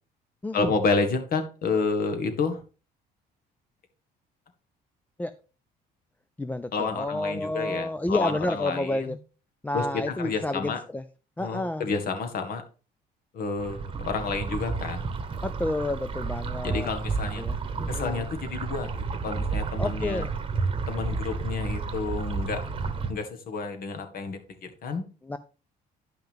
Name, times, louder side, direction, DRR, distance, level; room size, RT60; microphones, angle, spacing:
voice 1, 0.5-2.6 6.7-9.2 9.7-10.8 11.4-12.6 13.3-15.0 16.6-17.4 17.9-18.9 19.2-20.3 20.9-22.6 23.1-25.0, left 4 dB, 60° left, 6 dB, 1.7 m, -30 dB
voice 2, 6.4-9.2 9.6-11.0 11.4-11.9 15.4-16.9 17.4-18.3 19.8-20.3 25.2-25.4, left 2 dB, 10° left, 11 dB, 0.4 m, -30 dB
sound 1, 13.6-23.1, right 4 dB, 30° right, 1.1 m, -31 dB
10.5 x 5.7 x 3.6 m, 0.35 s
cardioid pair, 110°, 17 cm